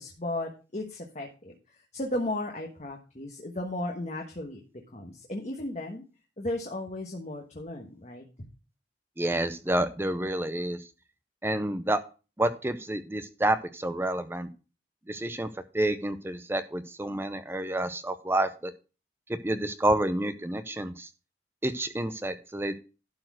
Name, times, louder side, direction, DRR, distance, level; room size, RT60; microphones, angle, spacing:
voice 1, 0.0-4.6 4.9-6.0 6.4-8.2, left 1 dB, 40° left, 2 dB, 1.3 m, -35 dB
voice 2, 9.2-10.8 11.4-12.0 12.4-14.5 15.1-15.5 15.7-18.7 19.3-21.1 21.6-22.7, right 1 dB, 15° right, 10 dB, 0.6 m, -29 dB
12.0 x 4.4 x 6.0 m, 0.33 s
head